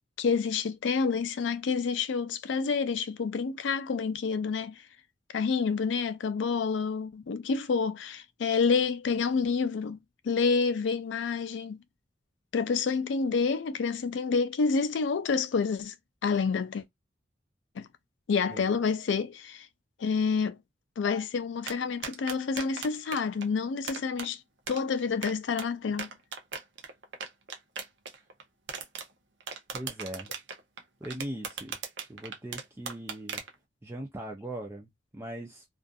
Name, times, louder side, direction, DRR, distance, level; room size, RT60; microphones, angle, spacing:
voice 1, 0.2-4.8 5.3-10.0 10.2-11.8 12.5-15.9 16.2-16.8 17.8-17.9 18.3-19.7 20.0-20.6 21.0-24.4 24.7-26.1, left 5 dB, 80° left, 0.4 m, -28 dB
sound 1, 21.7-23.4 23.8-24.3 24.7-25.7 26.0-28.4 28.7-29.0 29.4-33.5, right 5 dB, 70° right, 0.7 m, -37 dB
voice 2, 29.7-30.3 31.0-31.8 32.1-33.4 33.8-35.7, right 1 dB, 15° right, 0.4 m, -40 dB
2.5 x 2.4 x 2.2 m
head